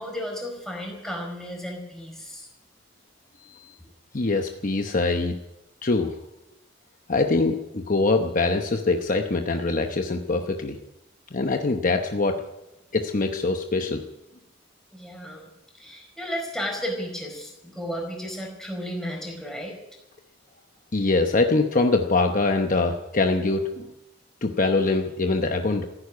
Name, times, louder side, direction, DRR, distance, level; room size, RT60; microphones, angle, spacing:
voice 1, 0.0-2.5 3.8-3.9 4.9-5.0 14.9-19.8, equal, ahead, 0 dB, 4.5 m, -34 dB
voice 2, 4.1-5.4 5.8-6.2 7.1-10.8 11.3-12.4 12.9-14.0 20.9-23.9 24.4-25.8, left 3 dB, 45° left, 5 dB, 0.9 m, -23 dB
15.0 x 10.0 x 9.5 m, 0.93 s
head